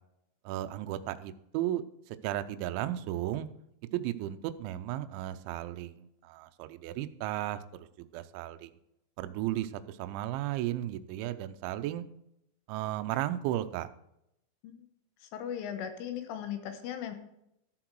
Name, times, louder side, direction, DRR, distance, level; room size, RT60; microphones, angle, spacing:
voice 1, 0.5-3.5 3.9-7.9 8.1-8.7 9.2-12.0 12.7-13.9, right 13 dB, 80° right, 8 dB, 2.7 m, -34 dB
voice 2, 15.3-17.2, left 9 dB, 75° left, 8 dB, 3.4 m, -37 dB
13.5 x 7.7 x 4.6 m, 0.79 s
omnidirectional pair, 6.0 m